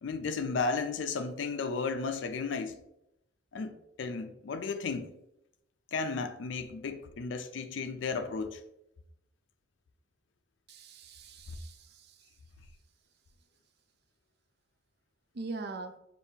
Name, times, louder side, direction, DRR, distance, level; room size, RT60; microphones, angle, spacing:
voice 1, 0.0-2.8 3.5-3.7 4.0-5.1 5.9-8.6, left 4 dB, 65° left, 0.4 m, -34 dB
voice 2, 10.7-12.2 15.3-16.0, right 3 dB, 55° right, 0.4 m, -42 dB
6.5 x 2.6 x 2.7 m
head